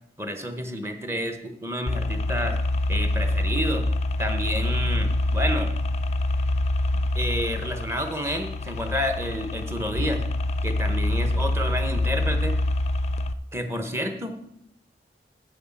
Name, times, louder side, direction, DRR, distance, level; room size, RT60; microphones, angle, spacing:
voice 1, 0.2-2.6 2.9-3.8 4.2-5.7 7.2-10.2 10.6-12.6 13.5-14.4, equal, 15° right, 6 dB, 0.9 m, -29 dB
sound 1, 1.9-13.3, left 1 dB, 35° left, 0.4 m, -26 dB
7.7 x 6.3 x 7.1 m, 0.80 s
head